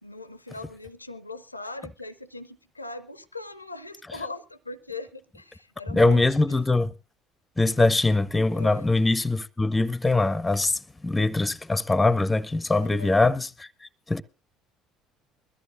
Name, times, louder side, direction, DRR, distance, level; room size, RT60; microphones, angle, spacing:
voice 1, 0.0-6.6 8.5-8.9 12.7-13.1, left 3 dB, 90° left, 0.6 m, -40 dB
voice 2, 5.9-6.9 7.6-13.7 14.1-14.2, left 2 dB, 15° left, 0.7 m, -22 dB
22.0 x 14.0 x 2.5 m
figure-of-eight pair, 55°, 0 cm